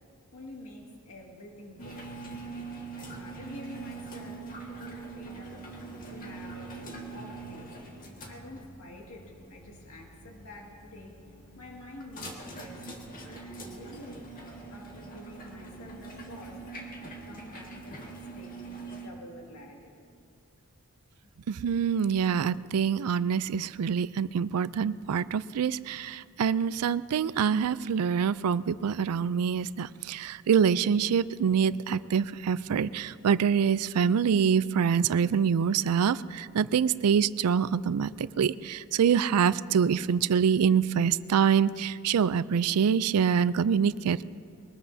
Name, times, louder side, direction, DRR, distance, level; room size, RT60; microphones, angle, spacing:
voice 1, 0.3-2.3 3.0-4.5 4.8-5.7 6.1-11.2 11.5-12.9 13.3-14.3 14.7-16.7 17.0-19.9, left 1 dB, 75° left, -1 dB, 2.0 m, -48 dB
sound 1, 1.8-19.1, right 3 dB, 40° left, 1.7 m, -43 dB
voice 2, 21.5-44.2, right 7 dB, 90° right, 17 dB, 0.4 m, -25 dB
22.5 x 19.5 x 2.7 m, 2.4 s
head